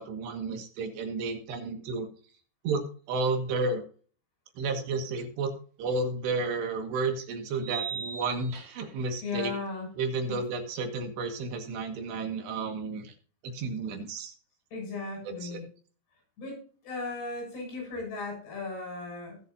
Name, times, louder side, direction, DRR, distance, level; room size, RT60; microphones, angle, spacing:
voice 1, 0.0-2.1 2.6-3.8 4.6-5.5 5.8-9.5 10.0-13.1 13.4-14.3 15.4-15.6, right 3 dB, 90° right, 5 dB, 4.3 m, -32 dB
sound 1, 5.9-6.0 7.6-9.0, right 7 dB, 45° right, 2.5 m, -38 dB
voice 2, 9.2-9.9 10.3-10.4 14.7-15.6 16.4-16.6 16.8-19.4, left 3 dB, 85° left, 0 dB, 9.1 m, -36 dB
20.0 x 7.5 x 2.9 m, 0.41 s
omnidirectional pair, 4.7 m